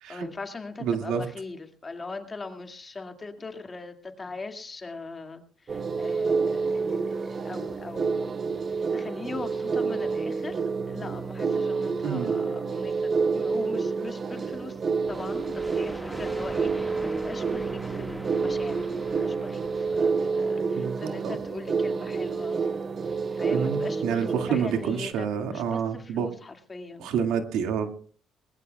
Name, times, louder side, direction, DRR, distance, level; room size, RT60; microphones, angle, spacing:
voice 1, 0.1-8.4 8.9-10.6 10.9-14.8 15.1-22.7 23.0-27.1, left 3 dB, 25° left, 5 dB, 2.2 m, -40 dB
voice 2, 0.8-1.2 12.0-12.3 20.8-21.4 23.5-26.3 27.0-27.9, right 7 dB, 80° right, 5 dB, 2.1 m, -28 dB
sound 1, 5.7-25.1, right 4 dB, 35° right, 0.9 m, -28 dB
sound 2, 15.1-20.6, equal, ahead, 1.7 m, -43 dB
21.0 x 20.0 x 2.3 m, 0.43 s
cardioid pair, 105°, 0 cm